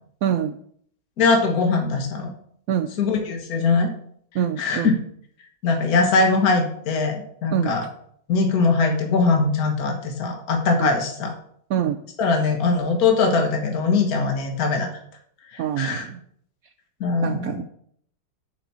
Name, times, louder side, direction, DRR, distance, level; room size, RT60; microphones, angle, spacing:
voice 1, 0.2-0.6 2.7-2.9 4.3-4.9 7.5-7.8 10.7-10.9 11.7-12.0 15.6-16.2 17.2-17.6, right 9 dB, 75° right, 8 dB, 0.8 m, -25 dB
voice 2, 1.2-2.3 3.0-3.9 4.6-4.9 5.6-7.8 8.3-11.3 12.2-14.9 15.5-16.0 17.0-17.6, left 4 dB, 55° left, 3 dB, 1.8 m, -21 dB
7.0 x 5.9 x 7.3 m, 0.64 s
omnidirectional pair, 2.0 m